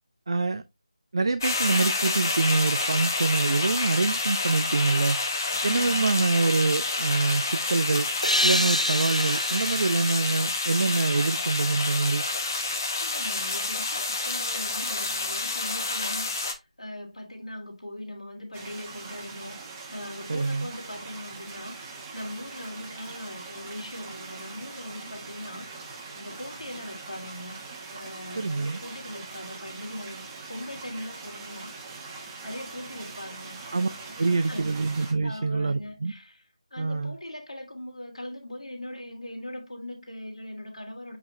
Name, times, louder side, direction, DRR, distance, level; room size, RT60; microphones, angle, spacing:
voice 1, 0.3-0.6 1.1-5.2 5.6-8.1 8.4-12.3 20.3-20.7 28.4-28.8 33.7-33.9 34.2-36.1 36.8-37.2, right 3 dB, 45° right, 0.4 m, -25 dB
sound 1, 1.4-16.5, left 3 dB, 30° left, 1.3 m, -29 dB
voice 2, 5.6-6.2 13.0-19.6 19.9-27.6 27.9-31.7 32.4-33.6 34.0-34.7 35.2-36.4 36.7-41.2, left 1 dB, 60° left, 3.0 m, -40 dB
sound 2, 8.2-11.7, equal, 85° left, 1.0 m, -29 dB
sound 3, 18.5-35.1, right 4 dB, 10° right, 1.1 m, -42 dB
8.5 x 3.7 x 3.0 m
figure-of-eight pair, 160°, 4 cm